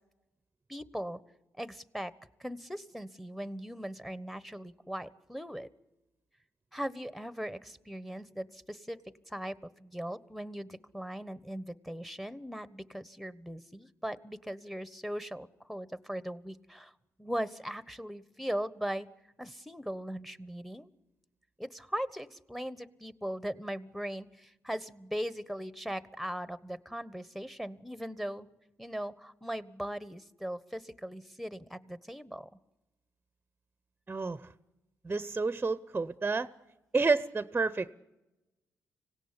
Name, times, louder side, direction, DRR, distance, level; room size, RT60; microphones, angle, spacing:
voice 1, 0.7-1.2 1.6-2.1 2.4-5.7 6.7-9.0 9.3-16.9 17.2-19.1 19.4-20.9 21.6-28.5 28.8-32.5, equal, ahead, 16 dB, 1.2 m, -39 dB
voice 2, 34.1-34.5 35.0-36.5 36.9-37.9, right 4 dB, 25° right, 15 dB, 0.8 m, -30 dB
25.0 x 17.5 x 9.8 m, 1.0 s
supercardioid pair, 65°, 6 cm